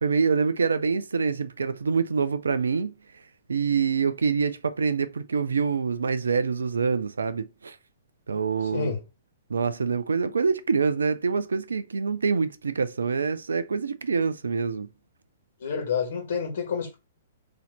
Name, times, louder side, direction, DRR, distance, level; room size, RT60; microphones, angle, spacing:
voice 1, 0.0-2.9 3.5-7.8 8.3-8.9 9.5-14.9, right 5 dB, 65° right, 0.4 m, -25 dB
voice 2, 15.6-17.0, left 6 dB, 55° left, 1.3 m, -28 dB
3.9 x 2.8 x 4.1 m
figure-of-eight pair, 110°, 0 cm